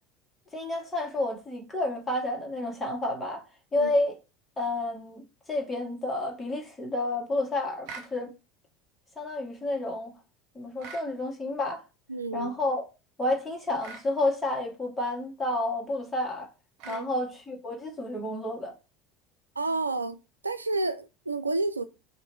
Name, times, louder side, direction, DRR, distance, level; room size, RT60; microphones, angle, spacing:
voice 1, 0.5-3.4 3.7-4.2 4.6-8.3 9.2-10.1 10.6-11.8 12.3-12.9 13.2-16.5 16.9-18.7, left 2 dB, 15° left, 1.8 m, -30 dB
sound 1, 7.9-8.1 10.8-11.1 13.8-14.1 16.8-17.1, right 4 dB, 55° right, 0.8 m, -42 dB
voice 2, 12.1-12.5 16.8-17.0 19.6-20.2 20.4-21.8, right 2 dB, 90° right, 0.3 m, -30 dB
3.0 x 2.9 x 4.4 m
figure-of-eight pair, 70°, 0 cm